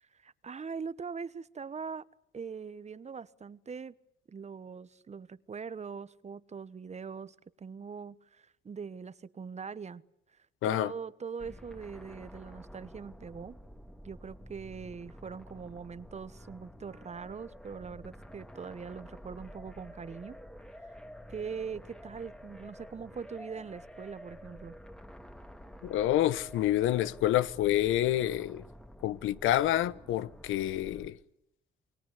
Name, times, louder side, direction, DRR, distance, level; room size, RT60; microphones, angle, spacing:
voice 1, 0.1-2.0 2.3-3.9 4.3-10.0 10.6-13.6 14.0-20.4 20.8-20.9 21.3-24.8, right 6 dB, 35° right, 1.1 m, -42 dB
voice 2, 10.6-10.9 25.8-28.6 29.0-31.2, left 13 dB, 90° left, 1.0 m, -28 dB
sound 1, 11.4-31.1, equal, 5° left, 2.0 m, -50 dB
29.0 x 21.5 x 8.3 m
cardioid pair, 90°, 20 cm